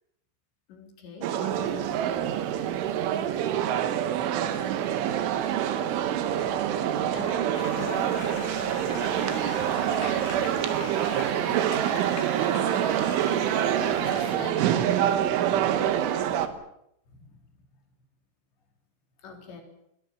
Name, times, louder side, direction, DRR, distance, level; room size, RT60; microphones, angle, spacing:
voice 1, 0.7-2.0 7.1-8.4 13.6-16.0 17.1-17.4 19.2-19.6, left 5 dB, 65° left, 3 dB, 6.0 m, -42 dB
sound 1, 1.2-16.5, right 10 dB, 80° right, 3.8 m, -26 dB
Motor vehicle (road), 1.5-16.5, right 3 dB, 40° right, 5.0 m, -45 dB
sound 2, 7.5-14.4, left 8 dB, 85° left, 4.5 m, -41 dB
voice 2, 15.9-16.6, right 3 dB, 20° right, 1 dB, 2.8 m, -46 dB
23.5 x 20.5 x 7.3 m, 0.79 s
omnidirectional pair, 5.6 m